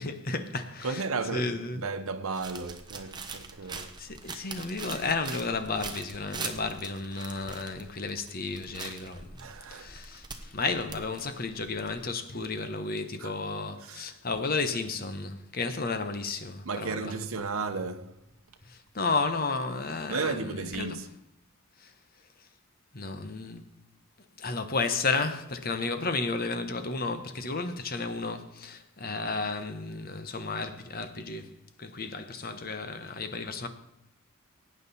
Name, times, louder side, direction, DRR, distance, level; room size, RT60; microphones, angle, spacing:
voice 1, 0.0-1.0 1.3-1.8 4.0-17.1 18.6-21.0 21.8-21.9 22.9-23.7 24.4-31.5 31.8-33.7, left 3 dB, 45° left, 1.1 m, -33 dB
voice 2, 0.8-3.9 9.4-10.0 13.2-13.3 13.8-14.1 16.6-18.2 20.1-21.1, right 4 dB, 75° right, 0.8 m, -34 dB
sound 1, 2.3-12.0, right 4 dB, 20° right, 1.1 m, -43 dB
17.5 x 8.9 x 4.2 m
head